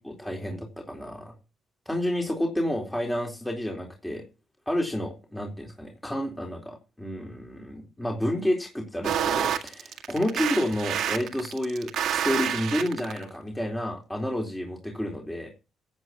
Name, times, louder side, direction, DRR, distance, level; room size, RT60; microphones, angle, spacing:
voice 1, 0.0-1.3 1.9-4.2 4.7-15.5, left 1 dB, 10° left, 1 dB, 3.9 m, -30 dB
sound 1, 9.0-13.2, right 9 dB, 75° right, 1.9 m, -28 dB
14.5 x 8.9 x 4.1 m, 0.30 s
cardioid pair, 90°, 0 cm